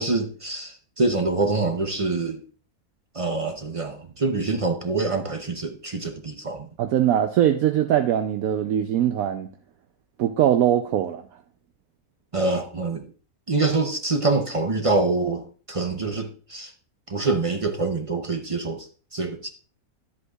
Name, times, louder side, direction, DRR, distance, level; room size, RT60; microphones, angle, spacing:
voice 1, 0.0-2.4 3.1-6.7 12.3-13.0 13.5-16.7 17.1-19.5, right 3 dB, 35° right, 0.5 m, -25 dB
voice 2, 6.8-9.5 10.2-11.2, right 10 dB, 70° right, 1.0 m, -21 dB
10.5 x 8.0 x 2.3 m
omnidirectional pair, 1.6 m